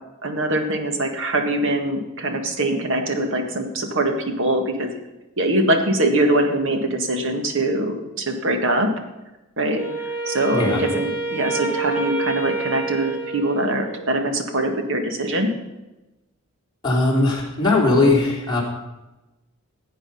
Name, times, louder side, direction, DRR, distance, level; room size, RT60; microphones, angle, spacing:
voice 1, 0.2-4.9 5.4-8.9 9.6-9.8 10.2-15.5, right 1 dB, 60° right, 5 dB, 1.7 m, -23 dB
Wind instrument woodwind instrument, 9.8-14.1, right 3 dB, 10° right, 2.0 m, -28 dB
voice 2, 10.5-10.8 16.8-18.6, left 2 dB, 20° left, -4 dB, 3.4 m, -19 dB
16.0 x 8.7 x 5.6 m, 1.0 s
head